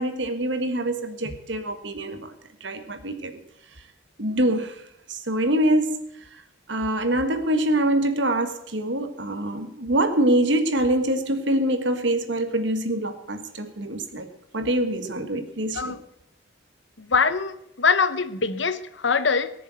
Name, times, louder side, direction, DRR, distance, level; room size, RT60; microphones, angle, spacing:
voice 1, 0.0-2.3 2.6-3.4 4.2-4.8 5.1-6.2 6.7-14.3 14.5-15.9, right 1 dB, 65° right, 7 dB, 1.6 m, -25 dB
voice 2, 17.0-19.5, left 5 dB, 65° left, 13 dB, 0.9 m, -23 dB
18.0 x 7.1 x 7.7 m, 0.78 s
head